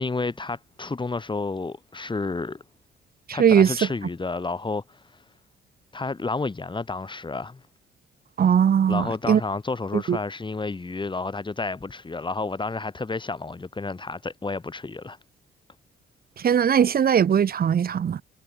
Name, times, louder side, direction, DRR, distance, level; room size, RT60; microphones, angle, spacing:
voice 1, 0.0-2.6 3.3-5.2 5.9-7.6 8.9-15.2, left 3 dB, 25° left, 4.7 m, -31 dB
voice 2, 3.3-3.7 8.4-9.4 9.9-10.2 16.4-18.2, right 8 dB, 50° right, 1.4 m, -20 dB
cardioid pair, 90°, 20 cm